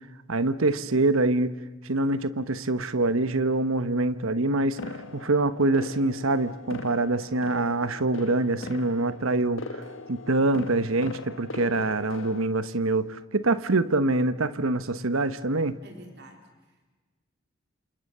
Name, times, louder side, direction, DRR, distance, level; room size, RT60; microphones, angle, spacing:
voice 1, 0.3-1.5 1.8-9.8 10.1-15.8, right 2 dB, 80° right, 13 dB, 1.2 m, -25 dB
sound 1, 4.8-12.5, left 2 dB, 70° left, 1.6 m, -40 dB
voice 2, 15.8-16.9, right 1 dB, 50° right, 4 dB, 3.8 m, -49 dB
29.0 x 28.0 x 6.8 m, 1.3 s
head